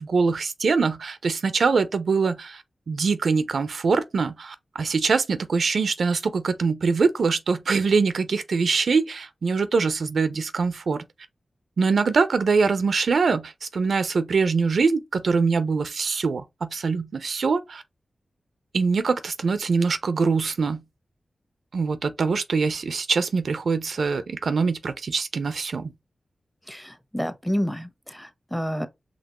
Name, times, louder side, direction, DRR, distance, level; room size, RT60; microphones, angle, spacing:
voice 1, 0.0-11.0 11.8-17.8 18.7-20.8 21.7-25.9, right 4 dB, 80° right, 0.4 m, -23 dB
voice 2, 26.7-28.9, equal, 5° left, 0.8 m, -29 dB
5.2 x 2.8 x 2.9 m
cardioid pair, 40°, 0 cm